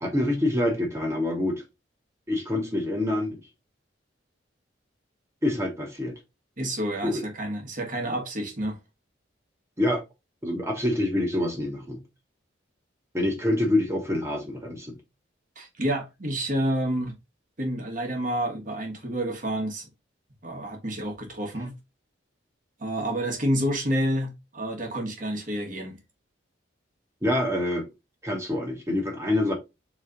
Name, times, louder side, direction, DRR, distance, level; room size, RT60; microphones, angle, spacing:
voice 1, 0.0-1.6 2.3-3.4 5.4-6.2 7.0-7.2 9.8-10.0 10.4-12.0 13.1-15.0 27.2-27.9 28.2-29.5, left 1 dB, 15° right, 1.3 m, -26 dB
voice 2, 6.6-8.8 15.5-17.1 17.6-19.9 20.4-21.7 22.8-26.0, right 1 dB, 45° right, 1.3 m, -29 dB
4.1 x 3.1 x 3.8 m
head